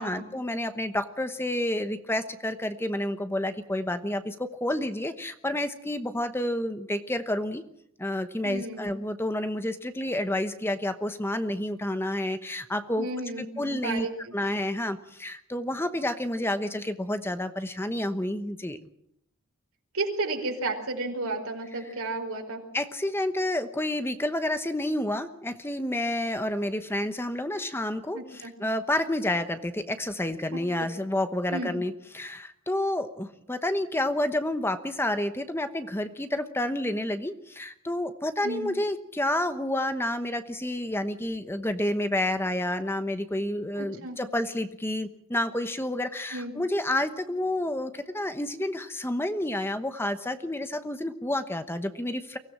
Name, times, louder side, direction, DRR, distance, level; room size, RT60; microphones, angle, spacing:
voice 1, 0.0-7.6 8.0-13.1 13.4-14.1 14.3-18.8 21.8-21.9 22.7-52.4, left 1 dB, 10° left, 9 dB, 1.0 m, -29 dB
voice 2, 8.4-8.9 13.0-14.1 19.9-22.6 28.1-28.5 31.5-31.7 38.4-38.7 43.8-44.2 46.3-46.5, right 2 dB, 85° right, 3 dB, 4.6 m, -32 dB
24.0 x 16.5 x 7.5 m, 0.73 s
head